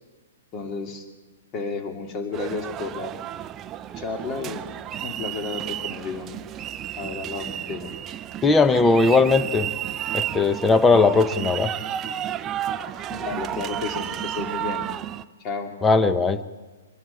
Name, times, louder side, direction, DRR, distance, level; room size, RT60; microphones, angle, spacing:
voice 1, 0.5-1.1 1.5-3.1 4.0-4.6 5.0-6.3 7.0-7.9 12.7-12.8 13.1-14.9 15.4-15.7, left 4 dB, 30° left, 5 dB, 2.7 m, -32 dB
sound 1, 2.3-15.2, right 11 dB, 25° right, 0.6 m, -32 dB
voice 2, 8.4-9.7 10.1-11.7 15.8-16.4, left 3 dB, 10° left, 12 dB, 1.0 m, -18 dB
23.5 x 11.5 x 9.8 m, 1.3 s
hypercardioid pair, 140°, 0 cm